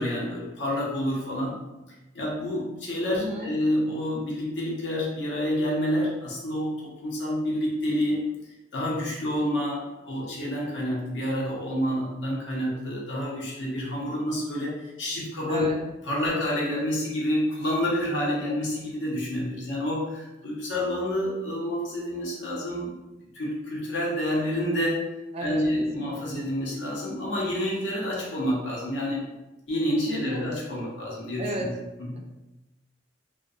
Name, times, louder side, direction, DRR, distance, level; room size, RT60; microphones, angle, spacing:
voice 1, 0.0-1.6 2.1-8.3 8.7-15.7 16.0-23.0 23.3-25.0 25.4-29.2 29.7-31.7 32.0-32.2, left 1 dB, 80° left, -4 dB, 0.7 m, -28 dB
voice 2, 3.1-3.6 15.5-15.8 25.3-25.6 26.0-26.4 30.1-30.5 31.4-31.7, right 1 dB, 35° right, 2 dB, 0.3 m, -33 dB
2.3 x 2.1 x 2.6 m, 1.0 s
head